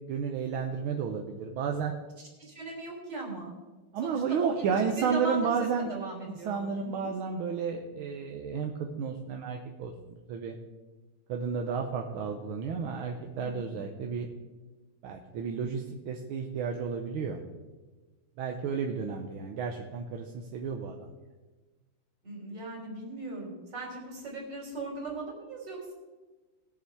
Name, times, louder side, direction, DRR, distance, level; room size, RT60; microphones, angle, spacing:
voice 1, 0.1-1.9 3.9-5.9 6.5-9.9 10.3-10.6 11.3-14.3 15.0-17.4 18.4-21.1, right 6 dB, 80° right, 3 dB, 1.7 m, -32 dB
voice 2, 2.4-3.5 4.0-7.1 13.4-13.8 22.2-25.9, right 3 dB, 55° right, -1 dB, 4.1 m, -39 dB
20.0 x 7.0 x 4.6 m, 1.2 s
omnidirectional pair, 2.3 m